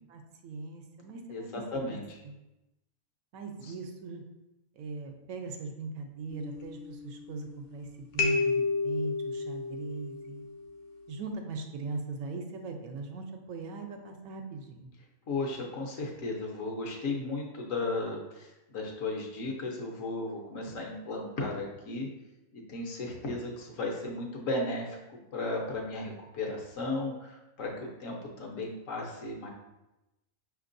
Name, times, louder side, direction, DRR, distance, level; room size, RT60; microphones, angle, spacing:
voice 1, 0.1-1.5 1.9-2.0 2.2-2.3 3.3-4.2 4.7-10.4 11.1-14.9, right 3 dB, 75° right, 4 dB, 1.0 m, -40 dB
voice 2, 1.3-2.2 15.3-22.1 22.5-29.5, left 2 dB, 70° left, 0 dB, 1.1 m, -35 dB
sound 1, 6.3-7.7 8.2-10.9, left 4 dB, 85° left, 1.2 m, -32 dB
5.8 x 2.9 x 2.6 m, 0.98 s
omnidirectional pair, 1.5 m